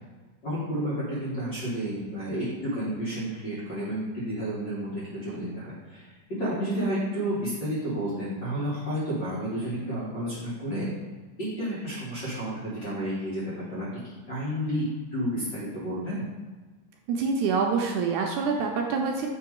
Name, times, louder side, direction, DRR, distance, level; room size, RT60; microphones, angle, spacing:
voice 1, 0.4-10.9 11.4-14.0 14.3-14.8 15.1-16.2, equal, 50° left, -8 dB, 1.4 m, -31 dB
voice 2, 17.1-19.3, right 5 dB, 80° right, 1 dB, 1.9 m, -26 dB
7.6 x 3.0 x 4.6 m, 1.3 s
omnidirectional pair, 3.8 m